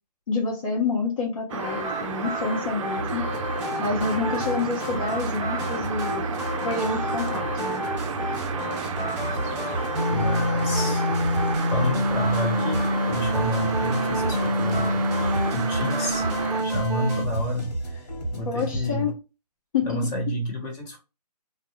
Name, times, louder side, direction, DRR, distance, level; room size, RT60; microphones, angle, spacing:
voice 1, 0.3-3.2 3.8-6.4 6.6-7.8 18.5-19.2 19.7-20.0, left 4 dB, 55° left, 0.9 m, -28 dB
sound 1, 1.5-16.6, right 6 dB, 50° right, 0.4 m, -32 dB
sound 2, 1.6-17.2, left 1 dB, 5° right, 1.1 m, -28 dB
sound 3, 3.0-19.1, right 1 dB, 85° left, 1.1 m, -33 dB
voice 2, 8.8-9.3 10.1-11.1 11.7-15.3 15.5-16.3 16.6-18.1 18.3-19.1 19.8-21.0, equal, 15° left, 0.6 m, -30 dB
2.2 x 2.2 x 2.9 m
hypercardioid pair, 145°, 21 cm